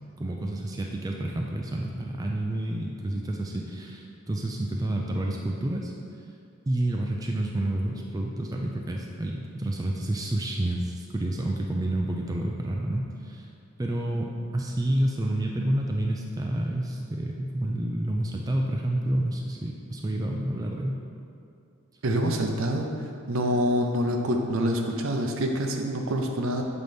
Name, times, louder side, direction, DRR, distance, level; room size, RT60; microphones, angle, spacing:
voice 1, 0.2-5.9 6.7-13.5 13.8-21.0, right 1 dB, 15° right, 0 dB, 0.3 m, -29 dB
voice 2, 22.0-22.9 23.3-26.6, equal, 65° right, 3 dB, 0.6 m, -26 dB
7.4 x 4.0 x 3.4 m, 2.5 s
head